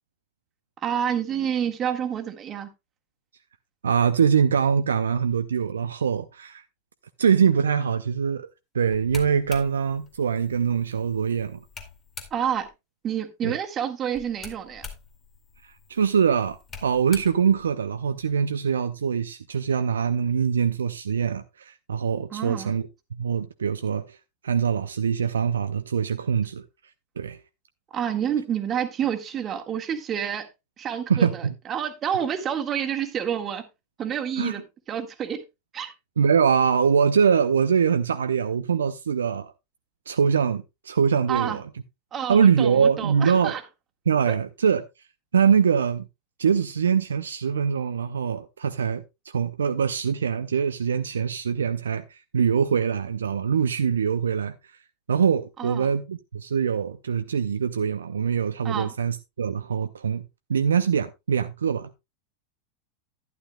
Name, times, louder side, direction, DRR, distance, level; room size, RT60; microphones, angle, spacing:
voice 1, 0.8-2.7 12.3-12.7 13.0-14.8 22.3-22.7 27.9-30.5 30.8-33.6 34.0-34.6 34.9-35.4 35.7-35.9 41.3-41.6 42.1-43.6 44.3-44.4 55.6-55.9 58.6-58.9, right 8 dB, 30° right, 1.7 m, -28 dB
voice 2, 3.8-6.6 7.2-8.5 8.7-11.6 13.4-13.6 15.6-24.2 24.4-26.7 27.2-27.4 31.1-31.5 34.4-34.6 36.2-39.5 40.1-41.6 42.3-43.6 44.1-44.8 45.3-46.1 46.4-54.8 55.1-60.2 60.5-61.9, right 7 dB, 75° right, 0.5 m, -23 dB
sound 1, 8.9-12.7 14.1-18.3, left 5 dB, 30° left, 2.3 m, -45 dB
12.0 x 11.0 x 2.2 m
figure-of-eight pair, 90°, 0 cm